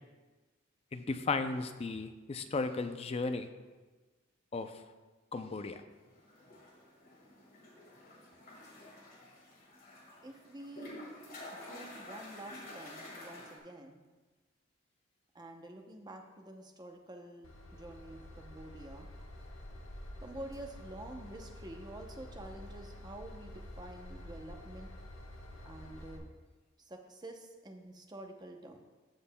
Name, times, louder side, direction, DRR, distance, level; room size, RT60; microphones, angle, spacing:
voice 1, 0.9-3.5 4.5-4.7 5.3-5.8, left 3 dB, 30° left, 9 dB, 0.4 m, -35 dB
sound 1, 6.0-13.6, left 1 dB, 45° left, 1.7 m, -50 dB
voice 2, 10.2-10.9 11.5-14.0 15.3-19.1 20.2-24.9 25.6-26.2 26.8-28.9, right 1 dB, 20° right, 3 dB, 0.7 m, -48 dB
Train / Engine, 17.4-26.2, left 1 dB, 80° left, 1.1 m, -49 dB
15.0 x 5.4 x 2.2 m, 1.3 s
head